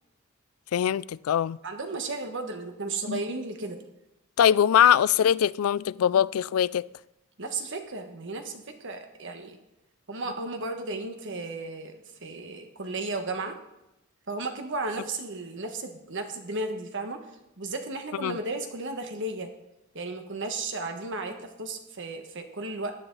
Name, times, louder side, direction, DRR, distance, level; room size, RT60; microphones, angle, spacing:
voice 1, 0.7-1.6 3.1-3.2 4.4-6.9 18.2-18.4, left 9 dB, 80° left, 0.3 m, -22 dB
voice 2, 1.6-3.8 7.4-9.6 10.1-13.6 14.3-17.3 17.6-19.5 19.9-22.9, right 2 dB, 60° right, 1.4 m, -34 dB
16.5 x 11.0 x 3.9 m
head